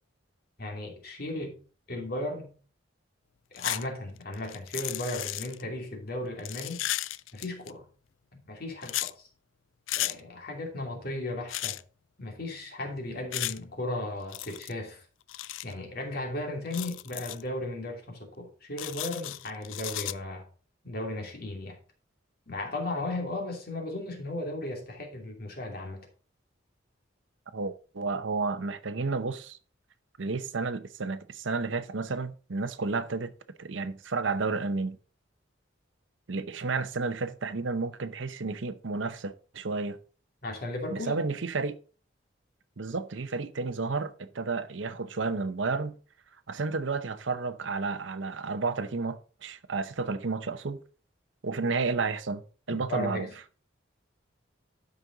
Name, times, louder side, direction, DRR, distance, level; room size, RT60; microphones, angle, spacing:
voice 1, 0.6-1.5 1.9-2.5 3.5-6.8 7.3-7.9 8.3-9.3 9.9-11.8 12.2-15.0 15.6-20.5 20.8-21.8 22.5-26.1 40.4-41.2 52.7-53.3, left 1 dB, 50° left, 2.7 m, -36 dB
sound 1, 3.6-3.9 4.2-5.6 6.4-7.7 8.8-9.1 9.9-10.1 11.5-11.8 13.3-13.6 14.3-14.7 15.3-15.7 16.7-17.4 18.8-20.1, left 15 dB, 85° left, 0.4 m, -34 dB
voice 2, 27.5-29.6 30.2-33.3 33.6-35.0 36.3-40.0 40.9-41.8 42.8-45.9 46.5-50.8 51.4-52.4 52.7-53.3, right 4 dB, 75° right, 0.8 m, -31 dB
12.5 x 5.3 x 4.0 m
head